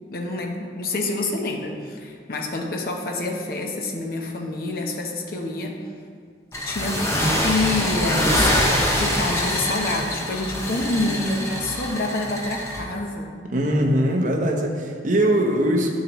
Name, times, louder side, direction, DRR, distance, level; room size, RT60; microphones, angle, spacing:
voice 1, 0.1-5.8 6.6-7.0 7.4-13.4, left 2 dB, 55° left, 2 dB, 0.8 m, -27 dB
sound 1, 6.5-12.8, equal, 15° left, 0.9 m, -24 dB
voice 2, 13.5-15.9, right 1 dB, 45° right, 1 dB, 0.8 m, -21 dB
9.1 x 6.6 x 3.0 m, 2.1 s
head